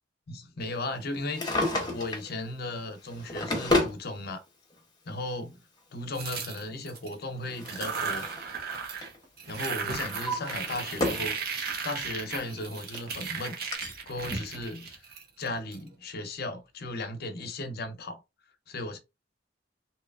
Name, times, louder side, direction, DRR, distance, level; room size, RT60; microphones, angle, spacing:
voice 1, 0.3-1.5 1.9-4.4 5.1-5.6 5.9-8.3 9.5-11.4 11.8-13.6 14.1-15.0 15.4-18.2 18.7-19.0, left 2 dB, 60° left, 0.6 m, -36 dB
Drawer open or close, 1.2-2.3 3.0-4.0 5.1-5.2 6.9-8.5 8.8-9.2 9.7-11.3 11.8-11.9 12.6-12.7 12.9-13.0 13.7-13.8, left 2 dB, 25° left, 0.8 m, -31 dB
sound 1, 6.1-7.1 7.6-9.1 9.4-15.8, right 5 dB, 55° right, 0.6 m, -36 dB
sound 2, 9.2-9.3 11.7-13.0 13.3-13.4 13.6-14.6, right 1 dB, 30° right, 1.0 m, -41 dB
2.8 x 2.3 x 2.3 m
head